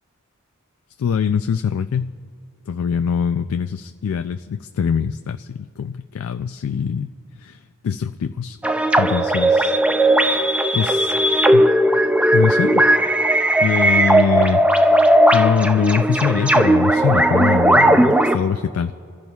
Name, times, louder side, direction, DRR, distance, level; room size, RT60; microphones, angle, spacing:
voice 1, 1.0-2.2 2.7-7.1 7.4-8.6 9.0-9.8 10.2-10.5 10.7-11.1 11.5-11.7 12.3-12.8 13.6-15.0 15.3-19.0, left 7 dB, 65° left, 9 dB, 0.3 m, -23 dB
sound 1, 8.6-18.4, right 1 dB, 5° right, 0.4 m, -16 dB
25.0 x 15.0 x 2.3 m, 2.2 s
head